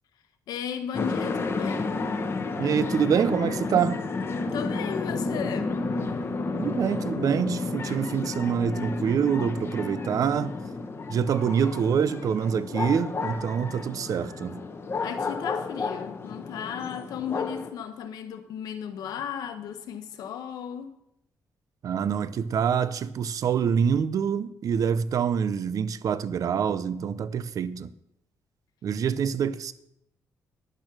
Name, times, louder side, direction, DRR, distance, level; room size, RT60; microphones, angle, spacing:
voice 1, 0.5-1.9 4.5-5.8 15.0-20.9, left 8 dB, 90° left, 1.2 m, -35 dB
sound 1, 0.9-17.7, left 3 dB, 40° left, 1.3 m, -31 dB
voice 2, 2.6-4.0 6.6-10.5 11.1-14.6 21.8-27.9 28.8-29.7, right 7 dB, 65° right, 0.7 m, -26 dB
10.5 x 8.9 x 6.2 m
cardioid pair, 95°, 6 cm